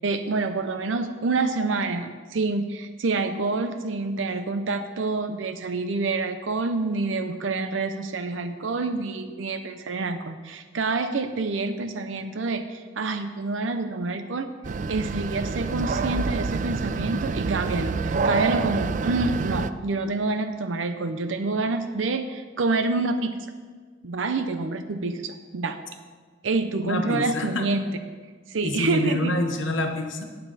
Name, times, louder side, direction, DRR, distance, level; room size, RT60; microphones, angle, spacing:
voice 1, 0.0-14.5 14.9-23.3 24.0-25.8 26.4-27.9 28.5-29.3, right 3 dB, 80° right, 9 dB, 0.6 m, -27 dB
sound 1, 14.6-19.7, right 4 dB, 40° right, 0.4 m, -27 dB
voice 2, 26.8-27.7 28.6-30.2, left 1 dB, 80° left, 4 dB, 1.3 m, -27 dB
18.0 x 6.8 x 4.1 m, 1.5 s
head